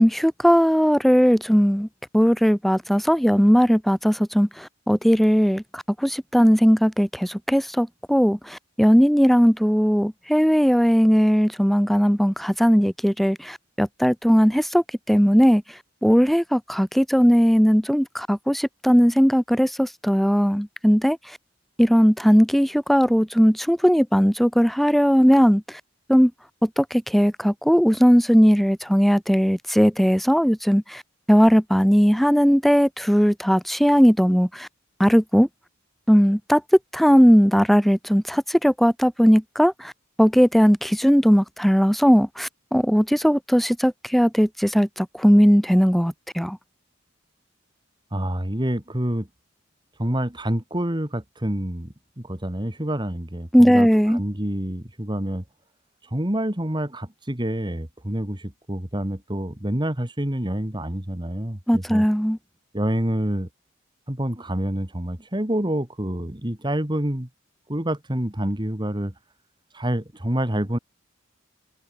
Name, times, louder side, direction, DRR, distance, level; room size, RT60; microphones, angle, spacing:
voice 1, 0.0-1.9 2.1-15.6 16.0-21.2 21.8-25.6 26.1-26.3 26.6-31.0 31.3-34.7 35.0-35.5 36.1-36.6 36.9-39.9 40.2-46.6 53.5-54.2 61.7-62.4, equal, ahead, 1.5 m, -18 dB
voice 2, 48.1-49.3 50.0-55.4 56.1-62.1 62.7-63.5 64.1-67.3 67.7-69.1 69.7-70.8, right 1 dB, 20° right, 2.2 m, -27 dB
head